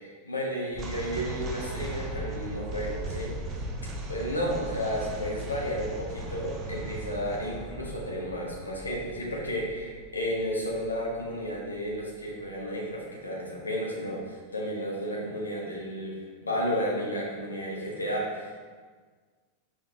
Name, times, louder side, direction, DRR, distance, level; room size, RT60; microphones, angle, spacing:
voice 1, 0.0-3.3 4.1-18.7, equal, 80° left, -3 dB, 1.3 m, -32 dB
sound 1, 0.7-12.0, right 2 dB, 30° right, 0.8 m, -38 dB
5.4 x 4.6 x 3.9 m, 1.5 s
figure-of-eight pair, 90°, 0 cm